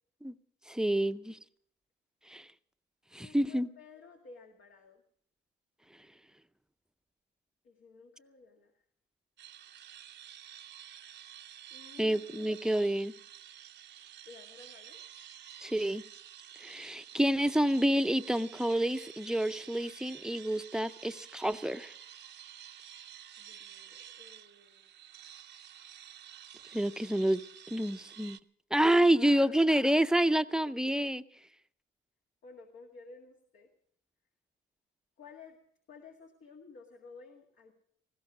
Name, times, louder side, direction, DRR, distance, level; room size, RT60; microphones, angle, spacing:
voice 1, 0.7-1.4 2.3-2.5 3.1-3.7 12.0-13.1 15.6-16.0 16.6-21.9 26.7-27.4 27.7-28.4 28.7-31.2, right 1 dB, 5° right, 0.6 m, -28 dB
voice 2, 3.2-5.0 7.6-8.7 11.7-12.5 14.3-15.0 23.4-24.9 29.1-29.6 32.4-33.7 35.2-35.6 35.9-37.7, left 4 dB, 75° left, 2.0 m, -53 dB
sound 1, 9.4-28.4, right 11 dB, 65° right, 0.6 m, -50 dB
19.0 x 15.5 x 4.9 m
cardioid pair, 90°, 20 cm